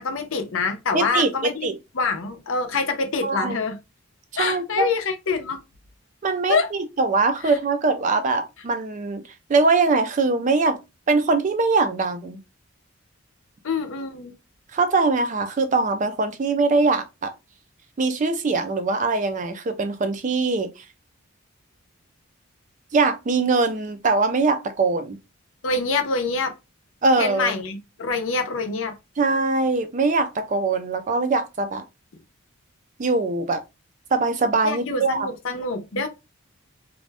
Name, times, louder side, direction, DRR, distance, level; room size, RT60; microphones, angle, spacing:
voice 1, 0.0-1.7 1.9-3.8 4.4-5.6 6.5-6.7 7.4-7.6 13.6-14.3 25.6-26.5 27.2-28.9 34.6-36.1, left 4 dB, 65° left, 0.6 m, -25 dB
voice 2, 0.9-1.7 3.2-3.6 4.3-4.9 6.2-9.2 9.5-10.8 11.1-12.4 14.7-17.3 18.0-20.7 22.9-25.2 27.0-27.5 29.2-31.8 33.0-33.6 34.1-35.3, right 3 dB, 35° right, 0.3 m, -22 dB
2.5 x 2.2 x 3.3 m
head